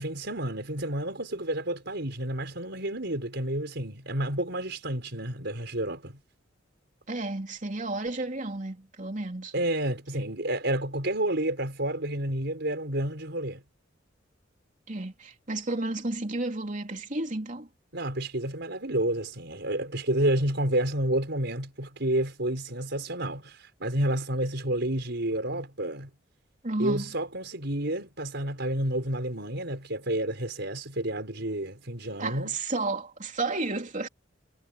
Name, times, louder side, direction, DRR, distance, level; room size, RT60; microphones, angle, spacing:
voice 1, 0.0-6.2 9.5-13.6 17.9-26.1 26.8-32.6, right 1 dB, 60° right, 5.7 m, -30 dB
voice 2, 7.1-9.5 14.9-17.7 26.6-27.0 32.2-34.1, right 2 dB, 40° right, 3.2 m, -32 dB
head